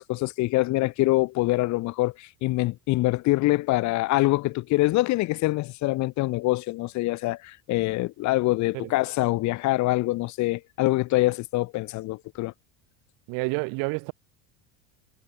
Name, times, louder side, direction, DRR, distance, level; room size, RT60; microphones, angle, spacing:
voice 1, 0.0-12.5, left 19 dB, 45° left, 5.2 m, -25 dB
voice 2, 13.3-14.1, right 31 dB, 55° right, 5.2 m, -29 dB
cardioid pair, 170°, 39 cm